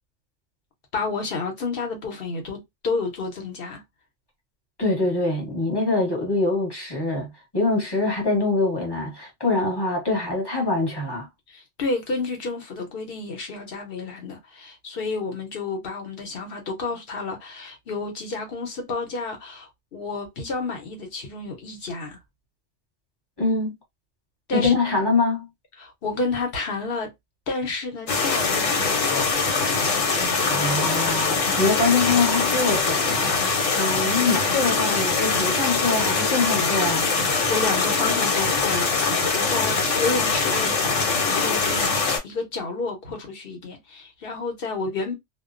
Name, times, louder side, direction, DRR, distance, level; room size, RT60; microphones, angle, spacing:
voice 1, 0.9-3.8 11.5-22.2 24.5-24.8 25.8-27.1 27.5-29.3 37.2-40.8 41.4-42.0 42.2-45.2, left 3 dB, 55° left, 1.0 m, -30 dB
voice 2, 4.8-11.3 23.4-23.7 24.5-25.5 30.4-37.1, left 3 dB, 20° left, 1.1 m, -24 dB
sound 1, 28.1-42.2, left 4 dB, 80° left, 1.2 m, -23 dB
2.4 x 2.1 x 2.4 m
omnidirectional pair, 1.3 m